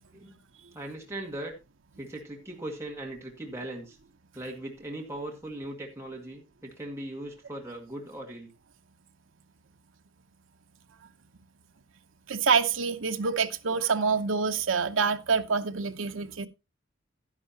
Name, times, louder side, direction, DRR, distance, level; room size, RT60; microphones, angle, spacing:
voice 1, 0.7-1.5 2.0-4.0 4.3-8.5, right 1 dB, 15° right, 1.9 m, -39 dB
voice 2, 12.3-16.5, right 5 dB, 80° right, 0.8 m, -26 dB
11.0 x 11.0 x 2.8 m
head